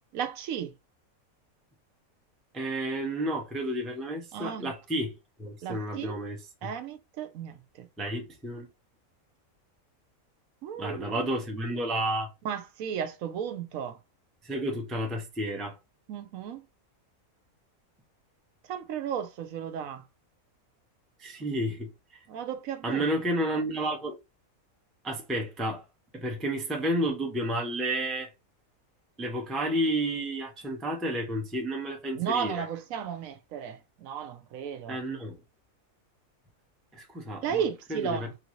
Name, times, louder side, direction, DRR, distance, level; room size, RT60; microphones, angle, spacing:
voice 1, 0.1-0.7 4.3-4.7 5.6-6.2 6.6-7.9 10.6-11.2 12.4-14.0 16.1-16.7 18.7-20.0 21.4-21.5 22.3-23.1 32.1-35.0 37.4-38.4, right 8 dB, 80° right, 1.0 m, -34 dB
voice 2, 2.5-5.1 5.4-6.7 8.0-8.7 10.8-12.3 14.4-15.7 21.2-21.9 22.8-24.2 25.0-25.8 26.1-28.3 29.2-32.6 34.9-35.4 36.9-37.6 37.9-38.3, right 1 dB, ahead, 0.4 m, -31 dB
3.7 x 2.6 x 2.9 m
omnidirectional pair, 1.5 m